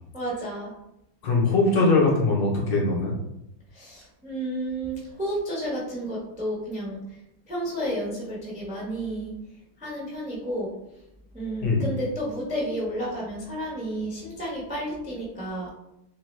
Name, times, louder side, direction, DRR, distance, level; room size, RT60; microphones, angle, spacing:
voice 1, 0.1-0.7 3.7-7.0 7.5-9.3 9.8-10.7 11.3-15.7, right 1 dB, 5° right, -6 dB, 0.6 m, -31 dB
voice 2, 1.2-3.2 11.6-11.8, left 3 dB, 65° left, -2 dB, 1.5 m, -21 dB
3.7 x 3.4 x 3.3 m, 0.85 s
omnidirectional pair, 2.3 m